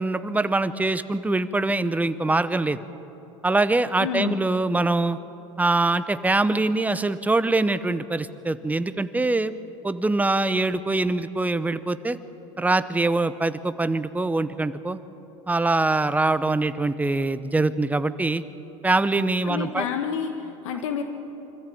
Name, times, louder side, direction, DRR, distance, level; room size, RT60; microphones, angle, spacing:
voice 1, 0.0-2.8 3.4-5.2 5.6-9.5 9.8-12.2 12.6-15.0 15.5-18.4 18.8-19.9, right 2 dB, 10° right, 13 dB, 0.9 m, -23 dB
voice 2, 4.0-4.4 19.4-21.0, left 8 dB, 75° left, 7 dB, 1.5 m, -29 dB
25.0 x 14.0 x 8.6 m, 3.0 s
hypercardioid pair, 95°, 16 cm